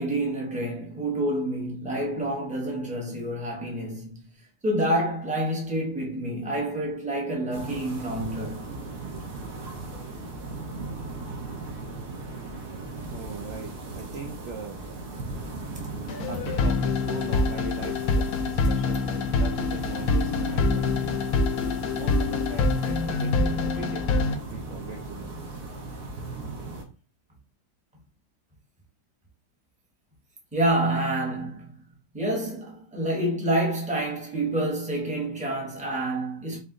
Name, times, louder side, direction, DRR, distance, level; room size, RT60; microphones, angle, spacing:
voice 1, 0.0-4.3 4.6-8.6 15.7-15.8 30.5-31.8 32.1-36.6, right 1 dB, 5° right, 0.7 m, -28 dB
sound 1, 7.5-26.8, right 2 dB, 60° right, 1.4 m, -37 dB
voice 2, 13.1-14.8 16.2-21.3 22.0-25.6, right 5 dB, 80° right, 0.6 m, -40 dB
sound 2, 16.1-24.4, left 3 dB, 70° left, 0.9 m, -25 dB
4.4 x 2.7 x 3.7 m
omnidirectional pair, 2.0 m